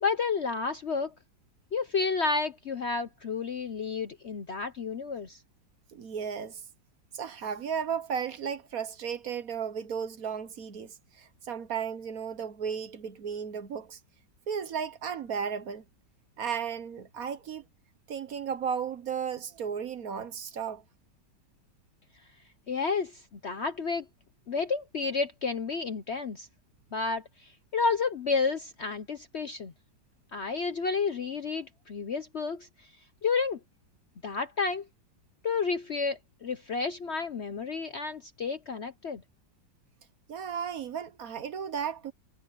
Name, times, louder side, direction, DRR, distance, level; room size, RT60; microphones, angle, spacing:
voice 1, 0.0-1.1 1.7-5.4 22.7-24.1 24.5-26.5 26.9-29.7 30.3-32.7 33.2-33.6 34.2-34.8 35.4-39.2, left 4 dB, 50° left, 0.8 m, -31 dB
voice 2, 5.9-6.6 7.1-14.0 14.5-15.8 16.4-17.6 18.1-20.8 40.3-42.1, right 7 dB, 55° right, 1.3 m, -34 dB
omnidirectional pair, 1.9 m